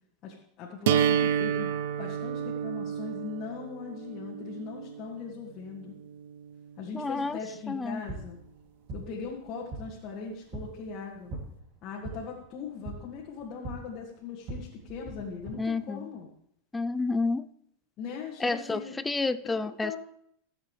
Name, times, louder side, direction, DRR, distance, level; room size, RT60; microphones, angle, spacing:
voice 1, 0.2-1.7 2.0-5.9 6.8-8.4 8.9-11.3 11.8-16.3 18.0-19.0 19.4-20.0, left 5 dB, 40° left, -5 dB, 1.9 m, -40 dB
sound 1, 0.9-6.8, right 9 dB, 75° right, 0.5 m, -30 dB
voice 2, 6.9-7.4 7.7-8.0 15.6-16.1 16.7-17.5 18.4-20.0, left 3 dB, 10° left, 12 dB, 0.4 m, -30 dB
sound 2, 7.7-15.5, right 2 dB, 45° right, 2.8 m, -43 dB
15.5 x 7.5 x 3.3 m, 0.69 s
supercardioid pair, 135°, 0 cm